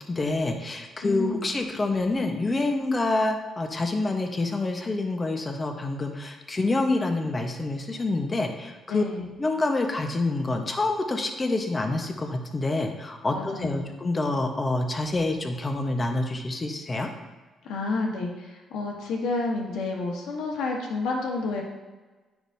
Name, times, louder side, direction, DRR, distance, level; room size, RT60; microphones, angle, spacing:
voice 1, 0.1-9.0 9.4-17.1, left 2 dB, 25° left, 4 dB, 1.1 m, -27 dB
voice 2, 1.0-1.4 8.9-9.3 13.3-13.9 17.6-21.6, left 3 dB, 85° left, -1 dB, 1.4 m, -30 dB
9.9 x 5.9 x 2.8 m, 1.2 s
cardioid pair, 90°, 0 cm